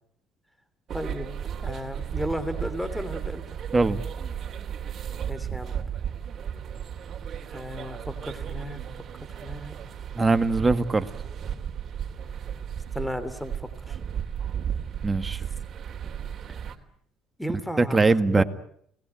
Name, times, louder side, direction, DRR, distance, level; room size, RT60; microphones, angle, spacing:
voice 1, 0.9-1.3 1.6-3.6 5.3-5.7 7.5-8.8 9.2-9.8 12.9-14.0 17.4-18.0 18.3-18.4, equal, 5° left, 13 dB, 3.2 m, -34 dB
sound 1, 0.9-16.8, right 8 dB, 45° right, 3.4 m, -34 dB
voice 2, 10.2-11.1 15.0-15.4 17.8-18.4, right 3 dB, 20° right, 10 dB, 1.9 m, -21 dB
29.5 x 19.5 x 9.3 m, 0.68 s
cardioid pair, 100°, 0 cm